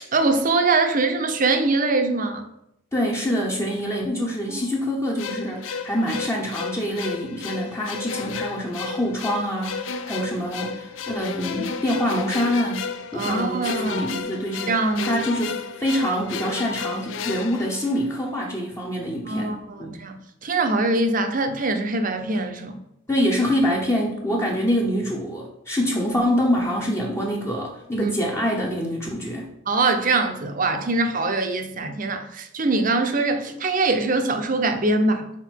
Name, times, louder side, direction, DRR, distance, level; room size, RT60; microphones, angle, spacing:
voice 1, 0.1-2.5 4.2-4.6 13.1-14.1 14.7-15.1 19.2-22.8 27.9-28.1 29.7-35.3, right 3 dB, 40° right, 0.7 m, -23 dB
voice 2, 2.9-12.9 13.1-19.9 23.1-29.5, equal, 15° left, 0.8 m, -25 dB
sound 1, 5.2-18.4, left 5 dB, 70° left, 0.5 m, -32 dB
6.0 x 4.5 x 4.5 m
head